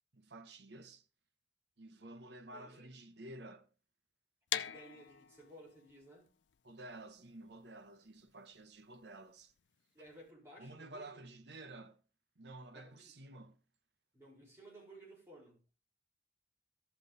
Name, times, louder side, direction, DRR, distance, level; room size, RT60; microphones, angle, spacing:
voice 1, 0.1-1.1 1.8-3.7 6.6-9.5 10.6-12.0 12.4-13.6, right 2 dB, 65° right, 1.0 m, -52 dB
voice 2, 2.5-2.9 4.6-6.3 9.9-11.2 12.7-13.1 14.1-15.6, right 1 dB, 15° right, 4.3 m, -57 dB
sound 1, 4.5-10.3, left 11 dB, 80° left, 0.5 m, -44 dB
14.5 x 5.6 x 3.9 m
head